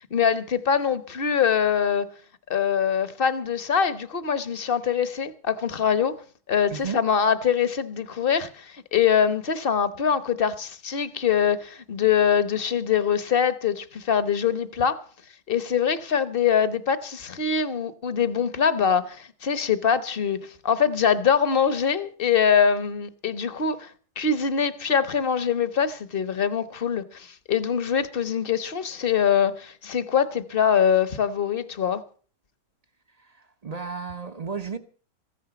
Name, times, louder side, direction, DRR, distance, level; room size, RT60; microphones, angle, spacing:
voice 1, 0.1-2.1 2.5-6.1 6.5-15.0 15.5-20.4 20.6-23.9 24.2-32.0, left 7 dB, 40° left, 1.0 m, -23 dB
voice 2, 6.7-7.0 33.2-34.8, right 5 dB, 35° right, 0.6 m, -34 dB
15.0 x 10.0 x 6.9 m
omnidirectional pair, 1.9 m